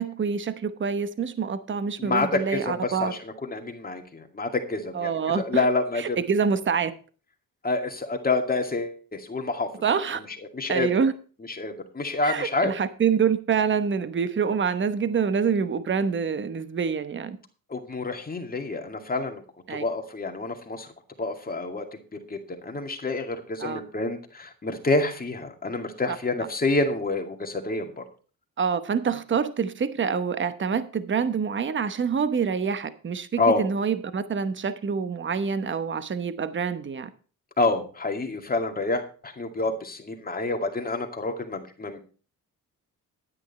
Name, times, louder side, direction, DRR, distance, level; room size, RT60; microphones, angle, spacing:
voice 1, 0.0-3.1 4.9-5.6 6.0-6.9 9.8-10.2 10.7-11.1 12.2-17.4 19.7-19.8 23.6-23.8 28.6-37.1, right 6 dB, 35° right, 1.0 m, -26 dB
voice 2, 2.0-6.2 7.6-9.7 10.5-10.9 11.5-12.7 17.7-19.4 19.7-20.9 21.2-21.9 22.3-22.4 22.6-28.0 33.4-33.6 37.6-42.0, left 3 dB, 25° left, 2.2 m, -28 dB
11.0 x 9.5 x 4.2 m
cardioid pair, 115°, 34 cm